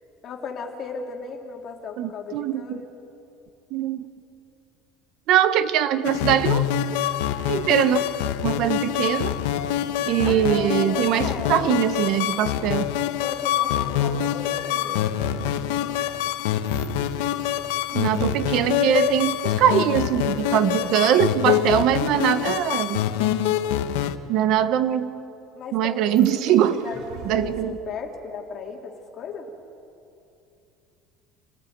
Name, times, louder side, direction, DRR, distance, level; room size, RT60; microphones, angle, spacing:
voice 1, 0.2-2.9 10.2-11.5 13.2-15.7 25.5-29.5, left 5 dB, 40° left, 1 dB, 2.9 m, -36 dB
voice 2, 2.0-2.8 3.7-4.1 5.3-6.6 7.5-8.1 8.4-9.4 10.1-12.9 17.9-23.0 24.3-25.1 25.7-26.7 27.3-27.8, right 10 dB, 55° right, 12 dB, 1.0 m, -22 dB
sound 1, 6.0-24.2, left 10 dB, 90° left, 1.1 m, -25 dB
sound 2, 16.6-21.7 26.0-27.6, right 5 dB, 80° right, 3.3 m, -47 dB
27.5 x 16.5 x 9.4 m, 2.7 s
cardioid pair, 145°, 0 cm